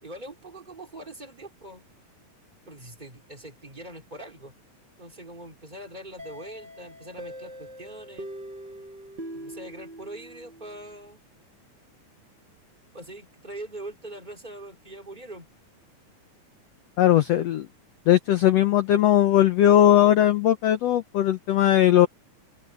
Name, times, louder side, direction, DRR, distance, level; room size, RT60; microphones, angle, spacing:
voice 1, 0.0-1.8 2.7-4.5 5.0-8.3 9.3-11.2 12.9-15.5, right 1 dB, 10° right, 3.6 m, -42 dB
sound 1, 6.2-10.9, right 1 dB, 30° right, 8.5 m, -42 dB
voice 2, 17.0-17.7 18.1-22.1, left 11 dB, 90° left, 1.4 m, -19 dB
omnidirectional pair, 4.1 m